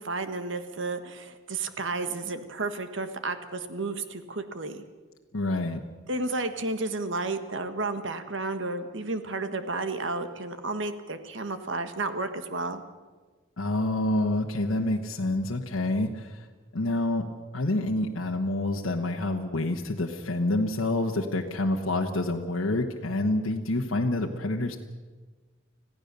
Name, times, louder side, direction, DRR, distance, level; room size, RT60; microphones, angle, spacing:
voice 1, 0.0-4.8 6.1-12.8, right 3 dB, 65° right, 9 dB, 1.5 m, -32 dB
voice 2, 5.3-5.8 13.6-16.5 16.7-24.8, left 2 dB, 85° left, 1 dB, 1.3 m, -27 dB
26.5 x 16.0 x 6.9 m, 1.4 s
head